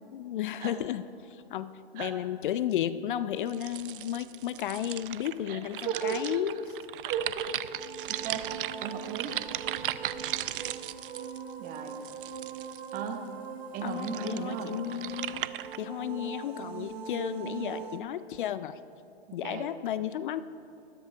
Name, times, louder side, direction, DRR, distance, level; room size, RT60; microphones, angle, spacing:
voice 1, 0.1-1.0 1.3-6.6 13.8-15.5 15.8-18.8 19.3-20.4, left 11 dB, 55° left, 14 dB, 0.4 m, -33 dB
sound 1, 3.5-13.1 13.8-15.8, right 12 dB, 55° right, 0.5 m, -37 dB
voice 2, 5.5-6.6 7.0-7.5 8.1-8.5 8.8-9.4 11.6-12.0 12.9-13.2 13.7-14.8 19.3-19.7, right 7 dB, 25° right, 6 dB, 1.1 m, -35 dB
sound 2, 7.4-18.0, right 6 dB, 75° right, 1.1 m, -41 dB
13.0 x 13.0 x 3.4 m, 2.7 s
hypercardioid pair, 125°, 32 cm